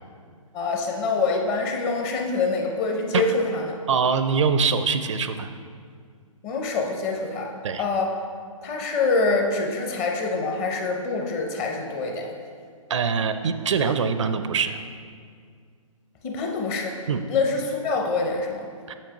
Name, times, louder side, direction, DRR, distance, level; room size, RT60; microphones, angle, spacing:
voice 1, 0.5-3.8 6.4-7.5 7.8-8.1 8.6-12.3 16.2-16.9 17.3-18.7, left 3 dB, 25° left, 2 dB, 0.7 m, -25 dB
voice 2, 3.9-5.5 7.6-7.8 12.9-14.8 17.1-17.2 18.9-19.0, right 5 dB, 60° right, 9 dB, 0.4 m, -23 dB
7.2 x 6.9 x 2.9 m, 2.1 s
figure-of-eight pair, 140°, 18 cm